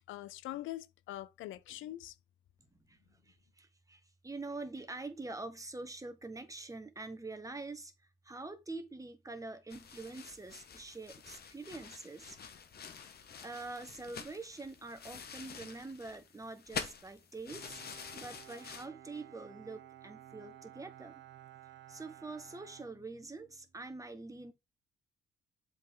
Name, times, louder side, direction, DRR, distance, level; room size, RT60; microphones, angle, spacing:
voice 1, 0.1-2.1, left 14 dB, 85° left, 0.5 m, -43 dB
voice 2, 3.3-7.9 8.2-12.4 13.4-21.2 21.9-24.5, right 3 dB, 15° right, 1.4 m, -45 dB
sound 1, 9.7-18.9, left 6 dB, 55° left, 1.4 m, -47 dB
Bowed string instrument, 17.5-23.7, right 12 dB, 60° right, 0.6 m, -55 dB
7.3 x 4.6 x 3.8 m
cardioid pair, 90°, 20 cm